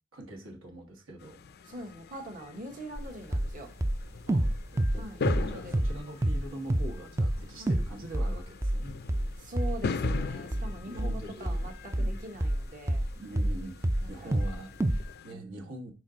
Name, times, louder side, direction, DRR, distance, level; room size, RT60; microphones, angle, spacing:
voice 1, 0.1-1.4 4.3-8.9 10.8-12.2 13.2-13.7 14.1-15.9, right 1 dB, 70° right, 4 dB, 1.4 m, -44 dB
sound 1, 1.2-15.3, left 4 dB, 50° left, 0.4 m, -41 dB
voice 2, 1.6-3.7 4.9-5.8 7.6-7.8 9.4-13.0 14.0-14.4 15.3-15.7, right 1 dB, 40° right, 1 dB, 1.1 m, -43 dB
sound 2, 3.0-3.1 3.3-3.5 3.8-6.0 6.2-6.4 6.7-6.9 7.2-7.4 7.7-7.9 8.1-13.6 13.8-14.5 14.8-15.0, right 1 dB, 15° right, 0.4 m, -27 dB
6.2 x 4.6 x 3.8 m, 0.32 s
head